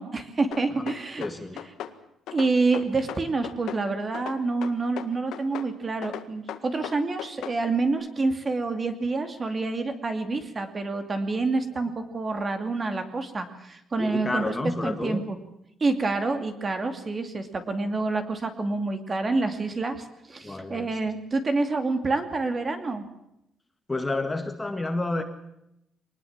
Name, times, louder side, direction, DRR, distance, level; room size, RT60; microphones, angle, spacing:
voice 1, 0.0-1.2 2.3-14.5 14.8-15.4 15.8-23.0, right 3 dB, 25° right, 7 dB, 2.5 m, -27 dB
sound 1, 0.5-2.0 2.3-3.8 4.1-5.7 6.0-7.6, left 11 dB, 80° left, 1.8 m, -37 dB
voice 2, 1.2-1.6 14.0-15.2 20.4-21.0 23.9-25.2, left 2 dB, 15° left, 7 dB, 1.9 m, -30 dB
24.0 x 20.0 x 7.4 m, 0.82 s
cardioid pair, 155°, 0 cm